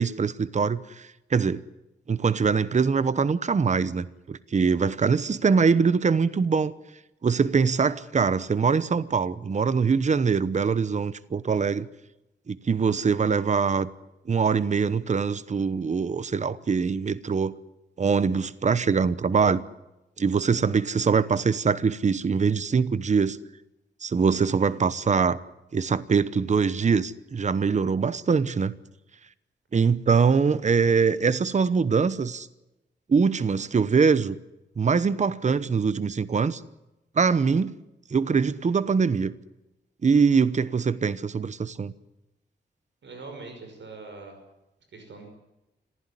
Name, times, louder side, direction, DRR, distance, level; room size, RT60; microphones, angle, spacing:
voice 1, 0.0-1.6 2.1-6.7 7.2-11.9 12.5-13.9 14.3-17.5 18.0-19.6 20.2-23.4 24.0-25.4 25.7-28.7 29.7-32.5 33.1-34.4 34.8-36.6 37.2-37.7 38.1-39.3 40.0-41.9, right 5 dB, 40° right, 0.9 m, -23 dB
voice 2, 43.0-44.4 44.9-45.3, right 3 dB, 80° right, 5.8 m, -42 dB
26.0 x 15.5 x 9.8 m
wide cardioid pair, 135°, 19 cm